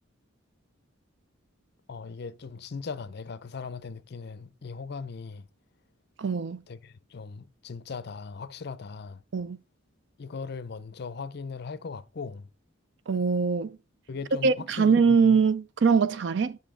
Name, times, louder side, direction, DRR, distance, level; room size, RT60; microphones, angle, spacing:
voice 1, 1.9-5.5 6.7-9.2 10.2-12.5 14.1-15.2, left 5 dB, 50° left, 0.5 m, -39 dB
voice 2, 6.2-6.6 9.3-9.6 13.1-13.8 14.4-16.6, right 5 dB, 60° right, 0.4 m, -23 dB
9.0 x 5.3 x 3.7 m
head